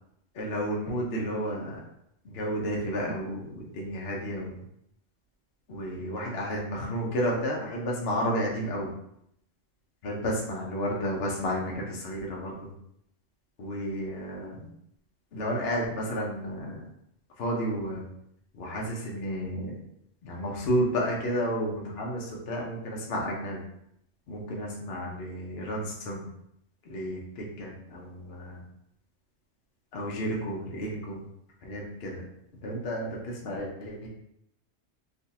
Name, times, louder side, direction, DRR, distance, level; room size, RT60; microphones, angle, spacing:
voice 1, 0.3-1.8 2.2-4.6 5.7-8.9 10.0-12.7 13.6-14.7 15.3-16.8 17.4-18.1 18.5-19.7 20.2-23.6 24.3-26.3 26.9-28.6 29.9-31.2 31.6-32.2 32.6-34.1, equal, 55° left, -2 dB, 0.9 m, -32 dB
3.7 x 2.4 x 2.7 m, 0.76 s
omnidirectional pair, 1.3 m